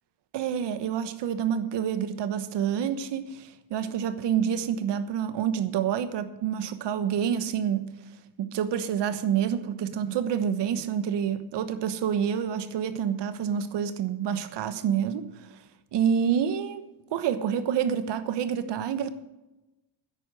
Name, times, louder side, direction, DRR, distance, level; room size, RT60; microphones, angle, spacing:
voice 1, 0.3-7.9 8.4-15.6 15.9-16.8 17.1-19.1, right 8 dB, 75° right, 1.2 m, -28 dB
10.5 x 8.5 x 7.7 m
cardioid pair, 140°, 42 cm